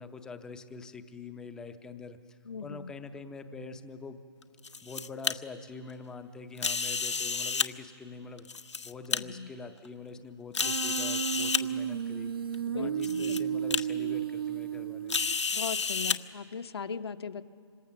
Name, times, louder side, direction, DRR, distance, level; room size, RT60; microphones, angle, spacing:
voice 1, 0.0-4.2 4.8-8.5 8.8-12.4 12.7-15.2, left 4 dB, 5° left, 9 dB, 0.6 m, -44 dB
voice 2, 2.5-2.9 9.1-9.5 12.7-13.6 15.5-17.4, left 6 dB, 65° left, 8 dB, 1.0 m, -39 dB
sound 1, 4.4-5.3 6.6-7.7 8.4-9.2 9.8-9.9 10.5-11.6 12.5-12.6 13.0-13.4 13.7-13.8 15.1-16.2, left 5 dB, 90° left, 1.2 m, -30 dB
Human voice, 10.6-15.6, right 8 dB, 50° right, 0.6 m, -33 dB
26.0 x 25.0 x 6.9 m, 2.6 s
hypercardioid pair, 155°, 15 cm